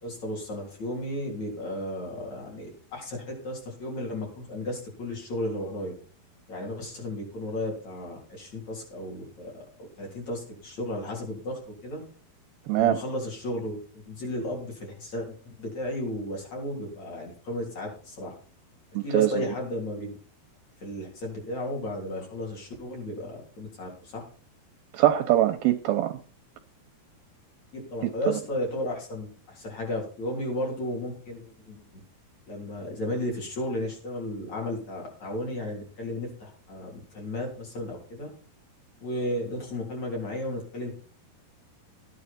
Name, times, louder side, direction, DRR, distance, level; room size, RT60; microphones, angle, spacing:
voice 1, 0.0-5.9 6.5-12.0 12.7-18.3 19.0-20.1 20.8-24.2 27.7-32.0 32.5-38.3 39.0-40.9, left 1 dB, 40° left, -1 dB, 4.4 m, -34 dB
voice 2, 12.7-13.0 19.0-19.3 24.9-26.2 28.0-28.4, right 13 dB, 80° right, 7 dB, 2.3 m, -23 dB
13.5 x 9.6 x 4.3 m, 0.41 s
omnidirectional pair, 4.8 m